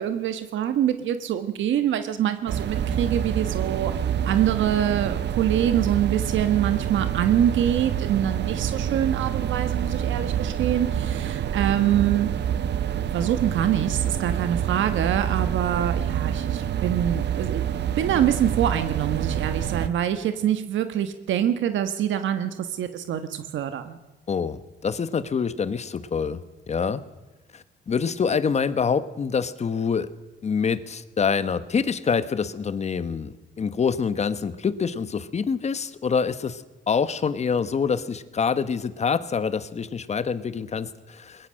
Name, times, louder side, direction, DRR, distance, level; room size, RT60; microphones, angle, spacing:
voice 1, 0.0-3.9 4.3-12.3 13.1-17.7 18.0-24.0, right 10 dB, 85° right, 9 dB, 1.4 m, -25 dB
sound 1, 2.5-19.9, right 9 dB, 65° right, 0.9 m, -27 dB
voice 2, 24.3-27.0 27.5-30.1 30.4-41.5, left 6 dB, 35° left, 14 dB, 1.2 m, -26 dB
21.5 x 21.0 x 6.4 m, 1.1 s
cardioid pair, 135°, 19 cm